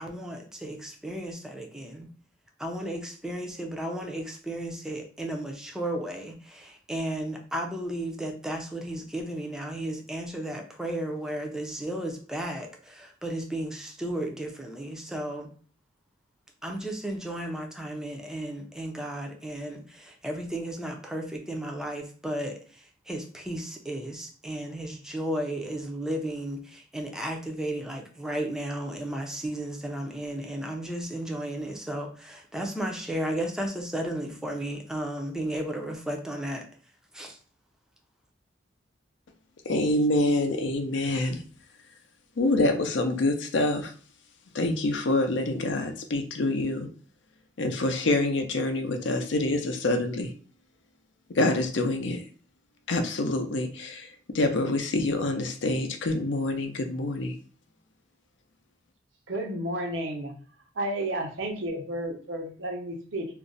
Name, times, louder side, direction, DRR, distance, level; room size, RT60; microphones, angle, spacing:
voice 1, 0.0-2.1 2.6-15.5 16.6-36.7 37.1-37.4, right 1 dB, 5° right, 2 dB, 0.4 m, -34 dB
voice 2, 39.7-41.4 42.4-43.9 44.5-46.9 47.6-50.3 51.3-52.2 52.9-54.1 54.3-57.4, left 2 dB, 70° left, 5 dB, 0.5 m, -26 dB
voice 3, 59.3-60.3 60.8-63.3, right 1 dB, 85° right, 2 dB, 0.8 m, -32 dB
2.5 x 2.1 x 3.8 m, 0.42 s
head